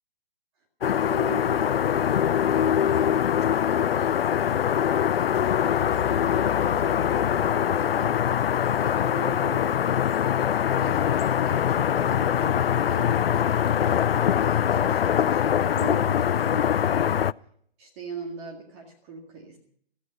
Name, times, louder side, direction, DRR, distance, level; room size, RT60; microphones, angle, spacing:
sound 1, 0.8-17.3, left 9 dB, 70° left, 0.5 m, -23 dB
voice 1, 0.9-3.2 3.6-5.5 5.8-8.2 8.6-10.2 10.7-13.8 14.4-17.2 17.8-19.6, right 4 dB, 25° right, 1 dB, 2.0 m, -42 dB
sound 2, 5.3-8.3, left 7 dB, 25° left, 0.7 m, -37 dB
15.5 x 14.0 x 5.4 m, 0.64 s
hypercardioid pair, 145°, 30 cm